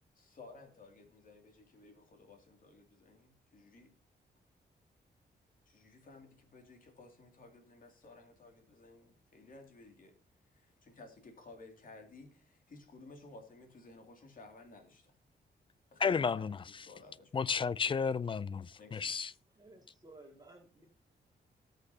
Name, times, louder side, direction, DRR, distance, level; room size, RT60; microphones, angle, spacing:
voice 1, 0.1-3.9 5.7-10.1 10.5-15.1 15.9-17.5 18.8-19.4, left 3 dB, 50° left, 2.6 m, -56 dB
voice 2, 16.0-16.6 17.3-19.3, left 6 dB, 30° left, 0.4 m, -32 dB
voice 3, 19.6-20.9, right 2 dB, 20° right, 2.3 m, -56 dB
19.0 x 6.7 x 2.8 m
cardioid pair, 110°, 18 cm